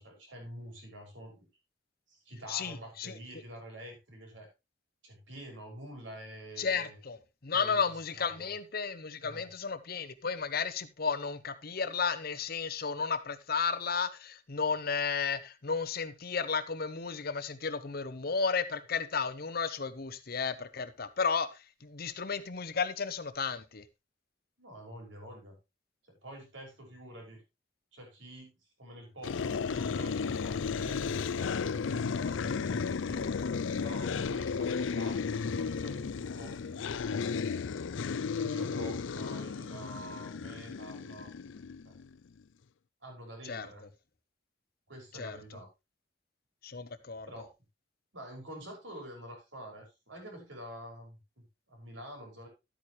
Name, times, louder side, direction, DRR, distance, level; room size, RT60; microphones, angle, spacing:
voice 1, 0.0-1.5 2.1-4.5 5.0-7.0 7.5-8.5 9.2-9.5 24.6-25.5 26.1-27.4 27.9-33.4 33.8-36.8 38.4-41.3 41.9-42.0 43.0-43.9 44.9-45.7 47.3-47.5 48.1-52.5, right 1 dB, 80° right, 1 dB, 5.5 m, -47 dB
voice 2, 2.5-3.2 6.6-23.8 43.4-43.7 45.1-45.4 46.6-47.3, left 5 dB, 50° left, 13 dB, 0.8 m, -33 dB
sound 1, 29.2-42.1, left 5 dB, 85° left, 0.5 m, -34 dB
11.5 x 8.7 x 3.2 m, 0.24 s
head